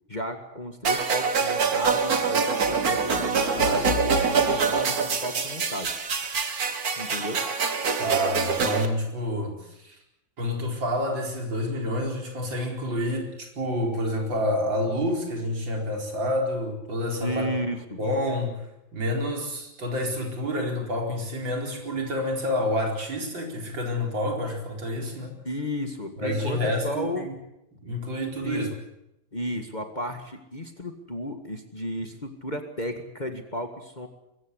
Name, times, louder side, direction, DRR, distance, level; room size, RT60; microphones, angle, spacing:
voice 1, 0.1-6.0 7.0-7.4 17.2-18.0 25.4-27.3 28.4-28.6 29.3-34.1, equal, 25° left, 5 dB, 1.8 m, -33 dB
sound 1, 0.8-8.9, right 5 dB, 50° right, 2.2 m, -25 dB
voice 2, 8.0-10.0 10.4-17.5 18.0-18.7 18.9-25.3 26.2-27.3 27.7-28.7, left 1 dB, 70° right, 2 dB, 5.3 m, -28 dB
23.0 x 15.0 x 9.8 m, 0.86 s
omnidirectional pair, 2.1 m